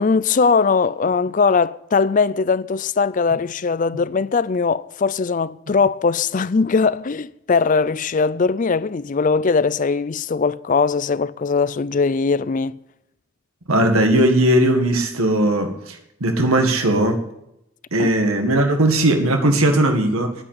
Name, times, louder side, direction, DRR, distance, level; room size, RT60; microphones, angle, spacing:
voice 1, 0.0-12.8 18.0-18.1, left 4 dB, 40° left, 0.4 m, -20 dB
voice 2, 13.7-17.2 17.9-20.3, right 1 dB, 85° right, 1.9 m, -18 dB
10.5 x 9.8 x 9.6 m
head